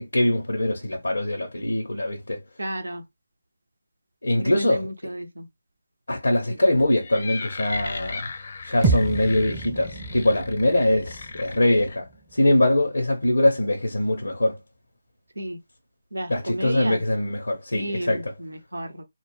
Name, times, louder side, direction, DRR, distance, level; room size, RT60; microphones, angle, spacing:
voice 1, 0.0-2.4 4.2-5.1 6.1-8.3 8.6-14.6 16.3-18.3, left 1 dB, 85° left, 0.7 m, -23 dB
voice 2, 2.6-3.0 4.4-4.8 5.0-5.5 15.4-15.6 16.1-17.0 17.7-19.0, right 1 dB, 85° right, 0.6 m, -32 dB
sound 1, 6.8-12.0, left 4 dB, 50° left, 0.4 m, -36 dB
sound 2, 8.8-13.2, right 4 dB, 15° right, 0.4 m, -30 dB
2.2 x 2.1 x 3.2 m
figure-of-eight pair, 155°, 0 cm